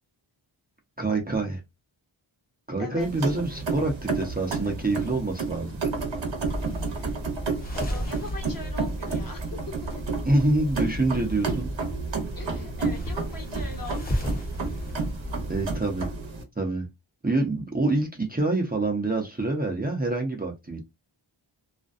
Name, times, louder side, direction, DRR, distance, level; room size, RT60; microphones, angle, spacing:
voice 1, 1.0-1.6 2.7-5.8 10.3-11.7 15.5-16.1 16.6-16.9 17.2-20.8, right 2 dB, 20° right, 0.6 m, -26 dB
voice 2, 2.8-3.3 6.9-7.1 7.9-9.6 12.4-14.3, left 2 dB, 45° left, 1.1 m, -41 dB
sound 1, 3.0-16.4, right 4 dB, 70° right, 0.8 m, -31 dB
sound 2, 6.5-15.8, equal, 20° left, 0.8 m, -34 dB
2.5 x 2.2 x 2.4 m
wide cardioid pair, 45°, 47 cm